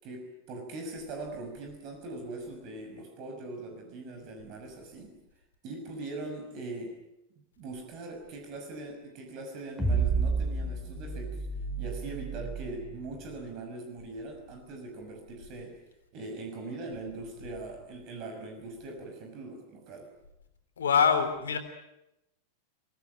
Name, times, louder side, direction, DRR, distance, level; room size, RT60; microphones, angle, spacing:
voice 1, 0.0-5.1 5.6-7.0 7.6-11.5 11.8-15.8 16.1-20.1, right 2 dB, 40° right, 4 dB, 5.8 m, -41 dB
sound 1, 9.8-13.2, right 4 dB, ahead, 5.1 m, -31 dB
voice 2, 20.8-21.6, left 6 dB, 65° left, 7 dB, 3.6 m, -24 dB
25.0 x 19.5 x 9.0 m, 0.89 s
figure-of-eight pair, 90°, 0 cm